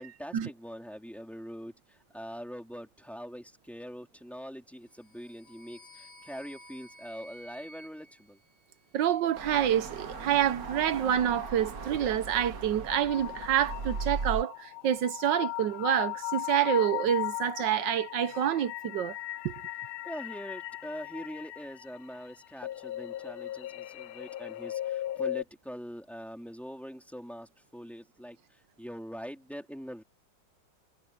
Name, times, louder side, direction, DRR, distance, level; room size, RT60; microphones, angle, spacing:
voice 1, 0.0-8.4 20.0-30.0, equal, ahead, 3.5 m, -43 dB
sound 1, 4.9-9.2, equal, 50° left, 5.8 m, -53 dB
voice 2, 8.9-19.1 19.4-19.5, right 10 dB, 70° right, 1.3 m, -27 dB
sound 2, 9.3-14.4, right 4 dB, 45° right, 2.1 m, -38 dB
sound 3, 12.9-25.4, left 16 dB, 90° left, 1.5 m, -37 dB
omnidirectional pair, 2.2 m